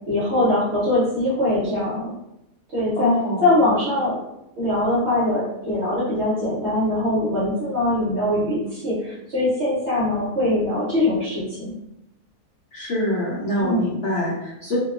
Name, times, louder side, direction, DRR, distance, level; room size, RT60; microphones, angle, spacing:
voice 1, 0.1-2.1 2.7-3.1 3.4-4.2 4.6-11.7 13.6-13.9, left 1 dB, 50° right, -8 dB, 0.9 m, -22 dB
voice 2, 3.0-3.5 12.7-14.8, equal, 60° left, -8 dB, 0.8 m, -25 dB
2.7 x 2.2 x 2.4 m, 0.87 s
omnidirectional pair, 1.7 m